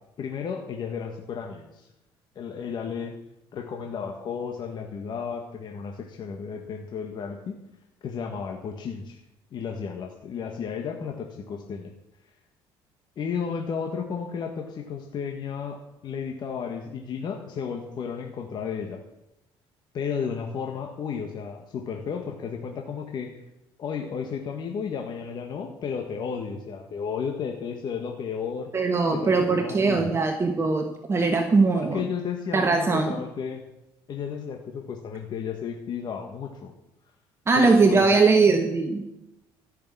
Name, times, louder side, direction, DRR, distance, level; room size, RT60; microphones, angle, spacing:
voice 1, 0.2-1.9 2.3-3.2 3.5-7.6 8.0-9.2 9.5-11.9 13.2-19.0 19.9-23.4 23.8-28.7 29.1-30.1 31.7-33.6 34.1-36.7 37.5-38.1, left 6 dB, 50° left, 2 dB, 1.5 m, -33 dB
voice 2, 28.7-32.0 32.5-33.1 37.5-39.0, right 4 dB, 25° right, 4 dB, 1.3 m, -21 dB
14.5 x 6.7 x 8.5 m, 0.91 s
cardioid pair, 120°, 10 cm